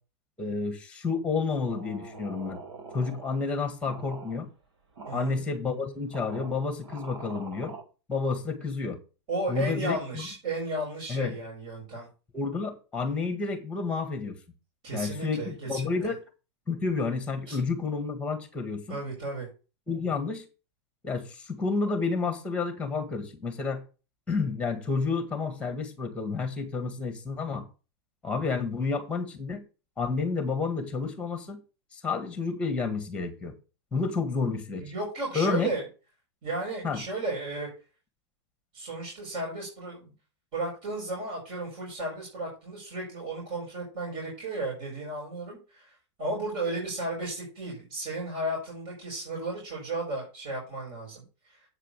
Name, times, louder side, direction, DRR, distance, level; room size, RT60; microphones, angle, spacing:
voice 1, 0.4-2.6 2.9-4.5 5.1-7.7 8.1-9.0 9.5-10.3 11.1-11.4 12.3-14.4 14.9-16.2 16.7-19.0 19.9-20.4 21.0-23.8 24.3-27.6 28.2-29.6 30.0-31.6 31.9-33.5 33.9-34.8 35.3-35.7 36.8-37.0, left 4 dB, 10° left, 7 dB, 1.8 m, -30 dB
sound 1, 1.7-3.5 3.9-4.4 5.0-5.4 6.1-7.8, right 3 dB, 85° right, 2.7 m, -44 dB
voice 2, 5.0-5.4 9.3-12.1 14.8-15.9 17.5-17.6 18.9-19.5 34.7-35.8 36.4-37.7 38.7-40.1 40.5-51.6, right 2 dB, 40° right, -2 dB, 5.1 m, -34 dB
8.3 x 5.0 x 6.9 m, 0.33 s
supercardioid pair, 155°, 15 cm